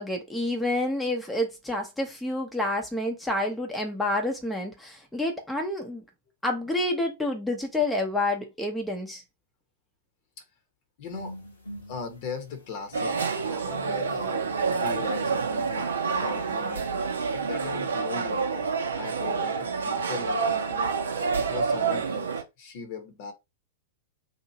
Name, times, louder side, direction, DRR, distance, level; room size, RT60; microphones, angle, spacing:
voice 1, 0.0-6.0 6.4-9.2, left 1 dB, 5° left, 0.7 m, -28 dB
sound 1, 11.0-13.3 13.7-17.6, left 1 dB, 75° left, 1.1 m, -43 dB
voice 2, 11.0-11.4 11.9-13.2 13.4-15.9 16.2-16.9 17.3-20.9 21.4-23.3, left 5 dB, 45° left, 0.9 m, -39 dB
sound 2, 12.9-22.4, right 5 dB, 70° right, 0.6 m, -28 dB
2.8 x 2.5 x 2.7 m
figure-of-eight pair, 95°, 0 cm